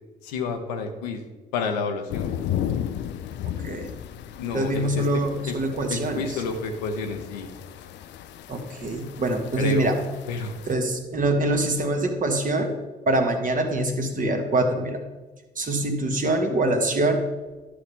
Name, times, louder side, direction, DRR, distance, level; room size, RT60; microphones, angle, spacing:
voice 1, 0.2-1.2 1.5-2.3 4.4-5.6 5.9-7.5 9.6-9.9 10.3-10.5, left 4 dB, 80° left, 5 dB, 0.9 m, -30 dB
sound 1, 2.1-10.7, left 10 dB, 60° left, 0.5 m, -35 dB
voice 2, 3.4-3.9 4.5-6.3 8.5-9.9 10.7-12.8 13.1-15.0 15.5-17.2, right 1 dB, 40° right, 3 dB, 1.6 m, -24 dB
11.5 x 6.8 x 3.7 m, 1.2 s
hypercardioid pair, 45°, 20 cm